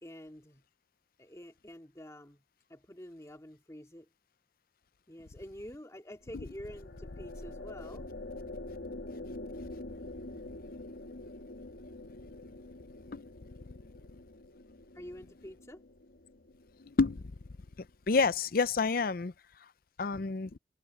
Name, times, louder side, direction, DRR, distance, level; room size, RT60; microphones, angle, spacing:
voice 1, 0.0-0.6 1.2-2.4 2.7-4.1 5.1-8.1 14.9-15.8, equal, 15° left, 2.2 m, -48 dB
sound 1, 6.2-17.7, left 2 dB, 75° left, 1.7 m, -46 dB
voice 2, 18.1-19.3 20.0-20.6, left 4 dB, 55° left, 0.6 m, -28 dB
head